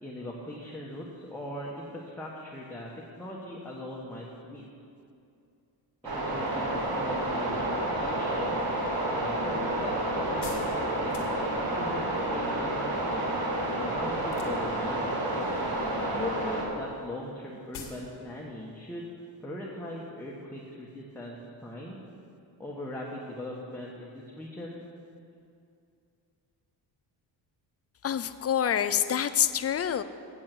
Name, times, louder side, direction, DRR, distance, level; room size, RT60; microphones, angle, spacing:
voice 1, 0.0-2.9 3.2-4.7 6.0-8.6 9.1-13.3 13.8-15.1 16.1-19.1 19.4-22.0 22.6-24.8, left 1 dB, 5° left, -4 dB, 1.2 m, -40 dB
sound 1, 6.0-16.6, right 1 dB, 50° right, 2.0 m, -30 dB
sound 2, 8.8-11.8 14.2-14.8 15.2-15.7 16.0-16.2 16.5-16.6 16.8-16.9 17.2-17.3 17.7-18.1 18.4-18.5, left 6 dB, 85° left, 1.5 m, -45 dB
voice 2, 28.0-30.0, left 9 dB, 35° left, 12 dB, 0.4 m, -26 dB
8.8 x 7.6 x 6.0 m, 2.5 s
cardioid pair, 85°, 45 cm